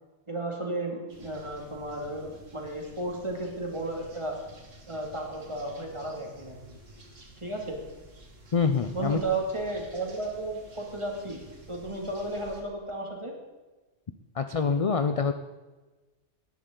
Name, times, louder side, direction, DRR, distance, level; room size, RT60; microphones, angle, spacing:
voice 1, 0.3-4.4 4.9-6.8 7.4-7.8 8.9-13.3, right 2 dB, 25° right, -1 dB, 2.5 m, -34 dB
sound 1, 1.1-12.6, right 1 dB, 85° right, 2.2 m, -51 dB
voice 2, 8.5-9.2 14.4-15.3, left 5 dB, 45° left, 8 dB, 0.4 m, -25 dB
17.5 x 11.0 x 3.9 m, 1.2 s
omnidirectional pair, 1.3 m